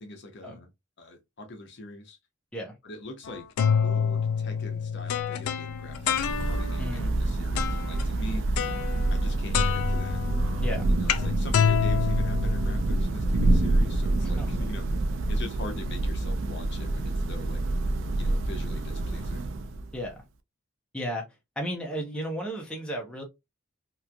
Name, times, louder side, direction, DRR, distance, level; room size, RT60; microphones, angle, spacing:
voice 1, 0.0-0.7 1.0-2.2 2.8-3.5 3.8-6.2 6.5-8.4 9.1-10.2 10.9-14.9 15.3-17.6 18.2-19.4, left 1 dB, 55° left, 0.6 m, -42 dB
sound 1, 3.3-6.8 7.5-8.0 8.6-9.3 9.5-13.0, left 7 dB, 90° left, 0.4 m, -28 dB
Thunder / Rain, 5.7-20.1, right 2 dB, 60° right, 0.4 m, -27 dB
voice 2, 6.8-7.1 10.6-10.9 14.4-14.6 19.9-20.2 20.9-21.3 21.6-23.2, equal, 5° left, 0.7 m, -34 dB
2.9 x 2.5 x 2.2 m
head